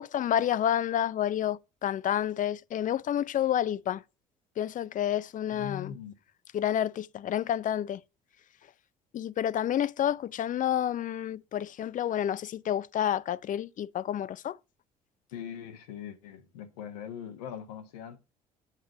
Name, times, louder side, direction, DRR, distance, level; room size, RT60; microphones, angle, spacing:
voice 1, 0.0-4.0 4.6-6.0 6.5-8.0 9.1-14.6, left 10 dB, 45° left, 0.5 m, -29 dB
voice 2, 5.5-6.1 15.3-18.2, left 8 dB, 80° left, 1.4 m, -41 dB
9.0 x 7.4 x 5.1 m
hypercardioid pair, 60°, 19 cm